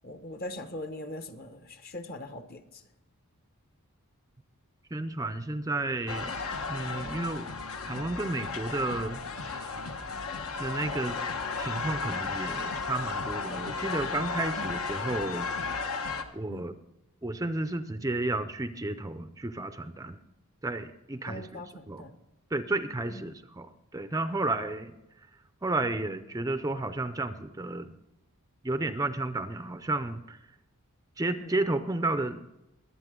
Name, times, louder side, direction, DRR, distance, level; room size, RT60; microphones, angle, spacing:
voice 1, 0.0-2.6 14.6-14.7 16.4-16.7 21.3-22.1 31.4-31.5, left 1 dB, 45° left, 9 dB, 1.1 m, -41 dB
voice 2, 4.9-6.3 6.7-7.5 7.8-9.8 10.6-11.2 11.6-15.8 16.3-16.7 17.2-20.2 20.6-22.1 22.5-24.9 25.6-28.0 28.6-30.4 31.2-32.4, right 2 dB, 15° right, 10 dB, 0.5 m, -32 dB
sound 1, 6.1-16.2, left 4 dB, 70° left, 1.2 m, -34 dB
22.5 x 8.6 x 3.8 m, 0.91 s
head